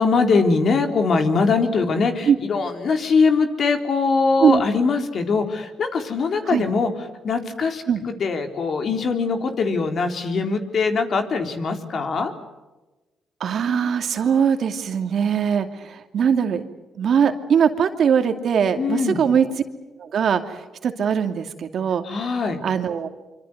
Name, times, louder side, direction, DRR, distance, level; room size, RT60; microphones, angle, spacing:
voice 1, 0.0-6.9 7.2-12.3 18.8-19.2 22.0-22.6, left 4 dB, 55° left, 6 dB, 3.9 m, -22 dB
voice 2, 13.4-16.6 17.0-19.5 20.0-22.0 22.6-23.1, right 7 dB, 60° right, 7 dB, 2.6 m, -21 dB
25.5 x 25.0 x 8.1 m, 1.1 s
cardioid pair, 90°, 0 cm